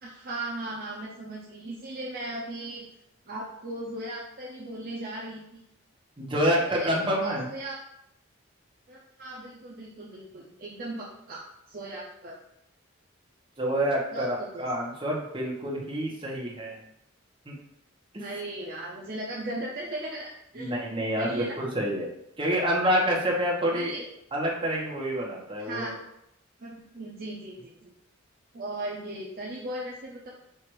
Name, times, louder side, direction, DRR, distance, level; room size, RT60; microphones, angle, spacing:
voice 1, 0.0-2.8 3.3-5.6 6.4-7.8 8.9-12.4 14.1-14.6 18.2-20.8 21.2-21.6 22.4-22.5 23.7-24.0 25.6-25.9 26.6-27.9 28.5-30.3, right 1 dB, 45° right, -3 dB, 0.6 m, -37 dB
voice 2, 6.2-7.5 13.6-16.8 17.5-17.6 18.1-18.3 20.6-22.1 22.4-23.9 24.3-26.0, equal, 25° right, -3 dB, 1.0 m, -27 dB
4.6 x 2.5 x 4.6 m, 0.80 s
head